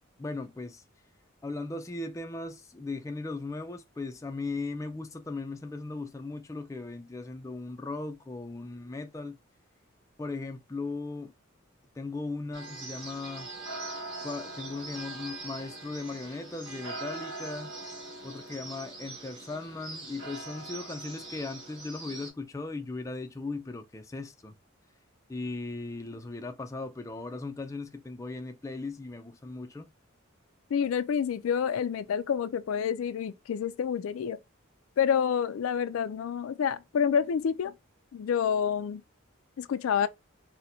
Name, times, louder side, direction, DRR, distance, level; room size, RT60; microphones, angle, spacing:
voice 1, 0.2-0.8 1.4-9.4 10.2-11.3 12.0-13.5 14.2-17.7 18.2-24.5 25.3-29.9, left 3 dB, 15° left, 0.3 m, -38 dB
sound 1, 12.5-22.3, right 2 dB, 65° right, 1.7 m, -42 dB
voice 2, 30.7-34.4 35.0-37.7 38.1-39.0 39.6-40.1, left 7 dB, 90° left, 0.3 m, -28 dB
4.1 x 2.1 x 2.6 m
head